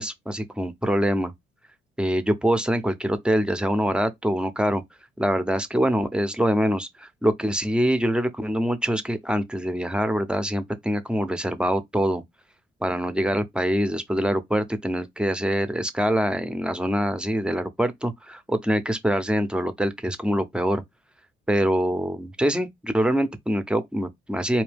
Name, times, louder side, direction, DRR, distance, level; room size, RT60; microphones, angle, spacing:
voice 1, 0.0-1.3 2.0-4.8 5.2-12.2 12.8-20.8 21.5-24.6, equal, 5° right, 0.8 m, -24 dB
4.4 x 2.8 x 3.4 m
cardioid pair, 90°, 20 cm